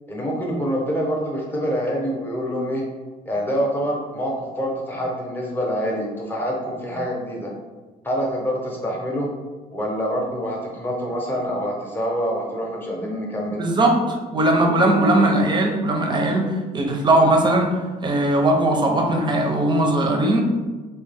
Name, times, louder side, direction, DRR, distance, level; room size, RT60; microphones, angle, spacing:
voice 1, 0.1-2.9 3.3-7.5 8.0-9.3 9.7-13.6, equal, 10° left, -2 dB, 0.9 m, -26 dB
voice 2, 13.6-17.7 18.0-20.4, right 1 dB, 25° right, 2 dB, 0.7 m, -19 dB
3.4 x 2.9 x 3.4 m, 1.3 s
cardioid pair, 110°, 17 cm